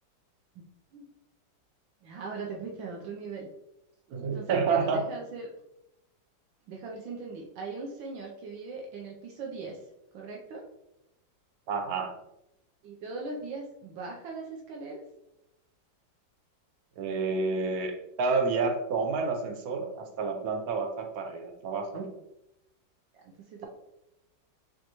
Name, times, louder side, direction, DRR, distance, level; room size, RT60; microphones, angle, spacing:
voice 1, 2.0-3.5 4.3-5.5 6.7-9.8 10.1-10.7 12.8-15.0 23.1-23.7, right 4 dB, 80° right, 0 dB, 1.4 m, -40 dB
voice 2, 4.1-5.0 11.7-12.1 17.0-22.1, right 4 dB, 60° right, 4 dB, 1.1 m, -29 dB
5.1 x 3.6 x 2.9 m, 0.86 s
omnidirectional pair, 2.1 m